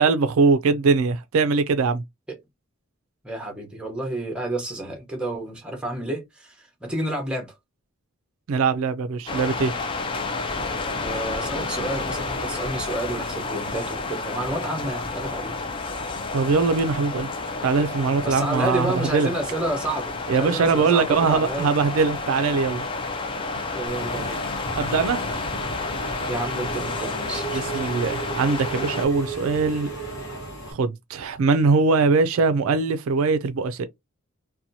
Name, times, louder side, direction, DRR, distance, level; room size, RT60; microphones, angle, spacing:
voice 1, 0.0-2.0 8.5-9.7 16.3-19.3 20.3-22.8 23.5-23.6 24.7-25.2 27.5-29.9 30.7-33.9, right 4 dB, 70° right, 0.4 m, -22 dB
voice 2, 3.2-7.5 11.0-15.5 18.2-21.7 23.7-24.4 26.3-28.0, right 1 dB, 5° right, 0.8 m, -30 dB
sound 1, 9.3-29.0, left 3 dB, 25° left, 0.3 m, -30 dB
Engine / Mechanisms, 23.9-30.7, right 2 dB, 60° left, 0.9 m, -34 dB
2.8 x 2.2 x 2.6 m
head